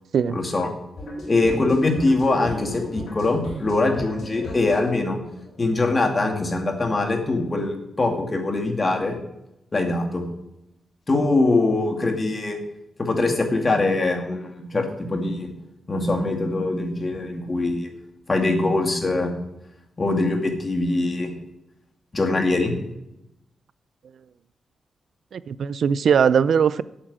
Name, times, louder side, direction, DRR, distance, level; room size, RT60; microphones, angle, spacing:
voice 1, 0.3-0.7 1.3-5.2 5.6-9.2 9.7-10.2 11.1-12.6 13.0-15.5 15.9-17.9 18.3-19.3 20.0-21.3 22.1-22.7, left 2 dB, 30° left, 2.3 m, -22 dB
sound 1, 1.0-6.7, left 1 dB, 70° left, 4.3 m, -37 dB
voice 2, 25.3-26.8, right 7 dB, 75° right, 0.4 m, -20 dB
8.8 x 7.1 x 8.8 m
cardioid pair, 75°, 0 cm